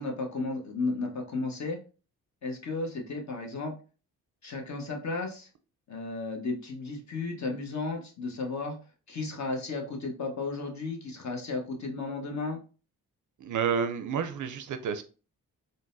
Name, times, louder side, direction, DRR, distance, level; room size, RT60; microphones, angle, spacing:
voice 1, 0.0-1.8 2.4-3.8 4.4-5.5 5.9-8.8 9.1-12.6, left 3 dB, 45° left, 1.0 m, -34 dB
voice 2, 13.4-15.0, right 6 dB, 55° right, 0.5 m, -30 dB
3.8 x 2.1 x 2.5 m
supercardioid pair, 55°, 38 cm